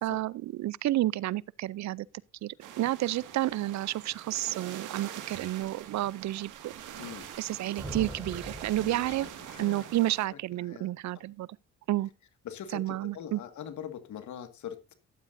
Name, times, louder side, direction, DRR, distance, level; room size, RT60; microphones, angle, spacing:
voice 1, 0.0-2.1 2.4-6.7 7.4-9.3 9.6-11.5 11.9-12.1 12.7-13.4, right 15 dB, 65° right, 0.5 m, -30 dB
sound 1, 2.6-10.3, right 10 dB, 85° right, 1.9 m, -44 dB
voice 2, 7.0-7.3 8.8-9.9 10.3-10.9 12.4-14.9, left 9 dB, 70° left, 1.9 m, -43 dB
sound 2, 7.7-9.7, right 1 dB, 10° right, 5.1 m, -42 dB
14.5 x 11.5 x 2.6 m
cardioid pair, 90°, 30 cm